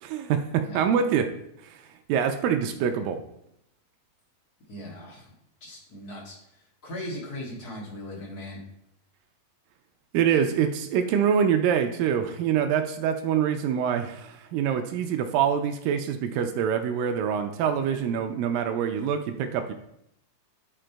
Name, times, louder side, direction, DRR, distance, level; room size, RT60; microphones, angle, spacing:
voice 1, 0.0-1.3 1.6-1.8 2.1-3.2 10.1-19.7, right 8 dB, 80° right, 7 dB, 2.2 m, -25 dB
voice 2, 4.7-5.3 5.6-6.3 6.8-8.6, left 1 dB, 40° left, -3 dB, 1.4 m, -38 dB
9.7 x 5.1 x 4.5 m, 0.78 s
omnidirectional pair, 4.4 m